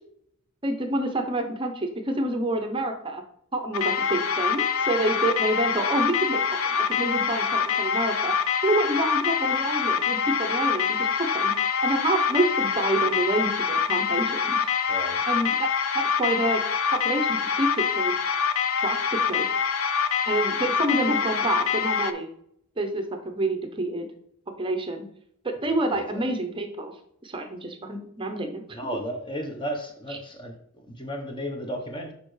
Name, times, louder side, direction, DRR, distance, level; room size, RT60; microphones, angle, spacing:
voice 1, 0.6-3.2 3.5-8.3 8.6-11.5 11.8-14.7 15.3-15.7 15.9-16.6 16.9-18.1 18.8-19.4 20.3-22.3 22.8-24.1 24.6-25.1 25.4-26.9 27.2-28.8 30.1-30.2, right 1 dB, 25° right, 5 dB, 0.7 m, -28 dB
sound 1, 3.7-22.1, left 6 dB, 70° left, 0.5 m, -25 dB
voice 2, 14.9-15.2 25.6-26.3 28.7-30.5 30.9-32.1, equal, 20° left, 3 dB, 1.0 m, -34 dB
6.7 x 5.2 x 3.2 m, 0.70 s
head